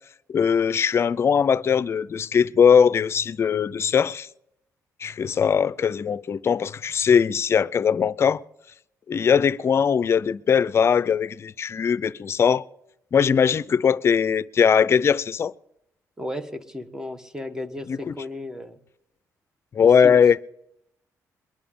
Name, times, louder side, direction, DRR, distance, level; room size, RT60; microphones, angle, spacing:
voice 1, 0.3-4.3 5.0-8.4 9.1-12.6 13.1-15.5 17.9-18.1 19.7-20.4, left 7 dB, 45° left, 0.5 m, -20 dB
voice 2, 16.2-18.8 19.8-20.2, left 1 dB, 10° right, 1.4 m, -34 dB
22.5 x 11.0 x 3.7 m
cardioid pair, 105°, 6 cm